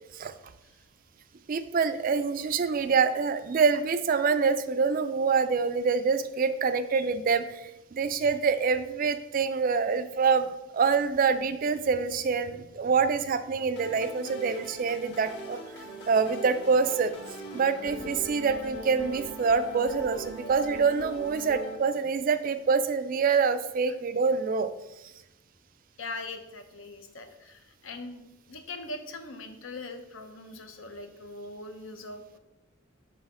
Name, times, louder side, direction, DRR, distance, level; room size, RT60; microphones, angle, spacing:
voice 1, 1.5-15.6 16.1-17.1 17.5-24.7, right 5 dB, 45° right, 11 dB, 0.3 m, -26 dB
sound 1, 13.8-21.8, right 1 dB, 55° left, 1.5 m, -40 dB
voice 2, 26.0-32.4, left 2 dB, 75° left, 6 dB, 0.8 m, -41 dB
5.5 x 4.1 x 5.0 m, 0.95 s
head